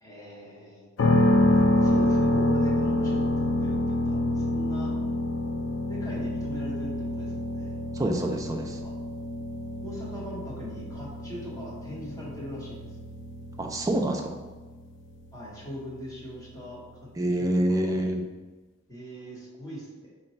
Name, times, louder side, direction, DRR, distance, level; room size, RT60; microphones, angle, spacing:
voice 1, 0.0-0.9 1.5-3.3 3.6-4.9 5.9-7.8 8.8-8.9 9.8-12.9 15.3-17.9 18.9-20.1, equal, 15° left, -6 dB, 0.9 m, -40 dB
sound 1, 1.0-16.8, left 2 dB, 70° left, 0.3 m, -27 dB
voice 2, 7.9-8.8 13.6-14.3 17.2-18.2, right 1 dB, 15° right, 2 dB, 0.3 m, -26 dB
3.8 x 2.2 x 4.0 m, 1.2 s
head